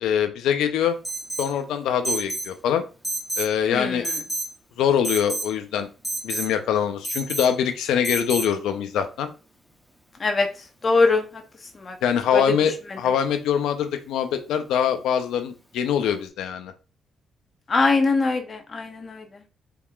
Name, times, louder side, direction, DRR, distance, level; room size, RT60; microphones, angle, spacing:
voice 1, 0.0-1.0 1.4-2.8 3.4-4.1 4.8-5.9 6.2-9.3 12.0-16.7, left 8 dB, 85° left, 8 dB, 0.5 m, -23 dB
Alarm, 1.0-1.5 2.0-2.5 3.0-3.5 4.0-4.5 5.0-5.5 6.0-6.5 7.0-7.5 8.0-8.5, right 2 dB, 5° left, 1.0 m, -29 dB
voice 2, 3.7-4.1 10.2-10.5 10.8-11.4 11.8-12.0 12.3-12.4 17.7-19.2, left 3 dB, 35° left, 5 dB, 0.8 m, -22 dB
4.4 x 3.6 x 2.4 m, 0.33 s
cardioid pair, 90°, 0 cm